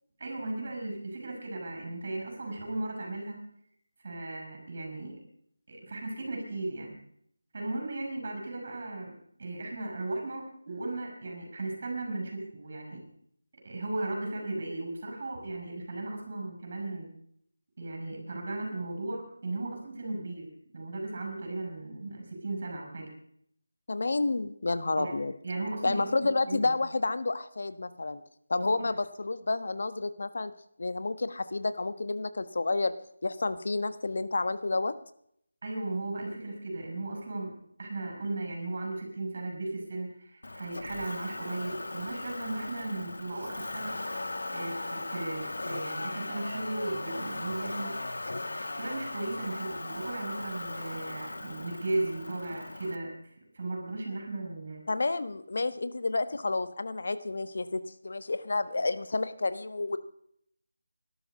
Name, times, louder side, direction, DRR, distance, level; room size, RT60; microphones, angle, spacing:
voice 1, 0.2-3.4 4.0-5.2 5.7-6.9 7.5-9.1 9.4-13.0 13.6-17.1 17.8-20.5 20.7-23.1 25.0-26.1 26.5-26.7 28.6-28.9 35.6-37.5 37.8-44.0 44.5-48.0 48.8-54.8, right 2 dB, 45° right, 2 dB, 7.6 m, -36 dB
voice 2, 23.9-25.3 25.8-28.2 28.5-30.5 30.8-32.9 33.2-34.9 54.9-60.0, left 3 dB, 60° left, 12 dB, 1.2 m, -30 dB
Motor vehicle (road), 40.4-53.0, left 2 dB, 75° left, 1.4 m, -38 dB
18.5 x 12.5 x 5.5 m, 0.69 s
figure-of-eight pair, 170°, 0 cm